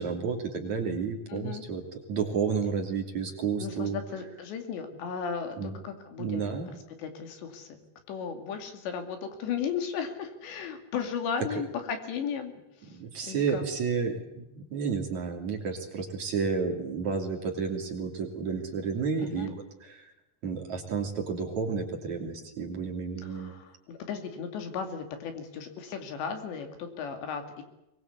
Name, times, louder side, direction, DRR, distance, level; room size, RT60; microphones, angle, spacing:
voice 1, 0.0-4.0 5.6-5.8 6.2-6.7 12.9-20.1 20.4-23.5, right 5 dB, 45° right, 1 dB, 3.8 m, -31 dB
voice 2, 1.3-1.6 3.6-5.6 5.8-6.5 7.0-7.7 8.1-12.5 13.2-13.6 19.2-19.5 23.2-27.6, left 6 dB, 75° left, 6 dB, 4.7 m, -35 dB
23.5 x 21.0 x 8.3 m, 0.89 s
omnidirectional pair, 5.1 m